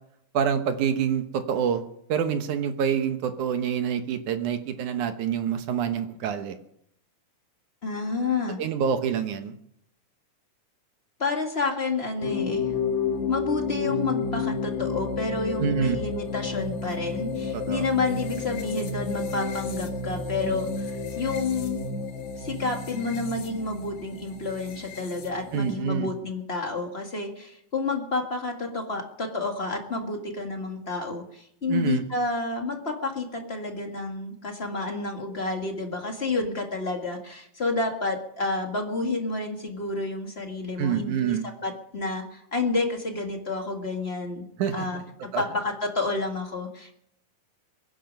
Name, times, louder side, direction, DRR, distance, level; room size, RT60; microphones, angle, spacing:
voice 1, 0.3-1.8 2.1-6.6 8.6-9.5 15.6-16.0 17.5-17.9 25.5-26.1 31.7-32.0 40.8-41.4 44.6-45.0 45.3-45.4, right 8 dB, 70° right, 8 dB, 2.4 m, -26 dB
voice 2, 7.8-8.6 11.2-12.7 13.3-21.8 22.4-44.4 44.7-46.9, left 3 dB, 30° left, 3 dB, 1.2 m, -30 dB
sound 1, 12.2-25.8, left 4 dB, 85° left, 3.8 m, -31 dB
23.5 x 10.5 x 5.4 m, 0.74 s
omnidirectional pair, 3.9 m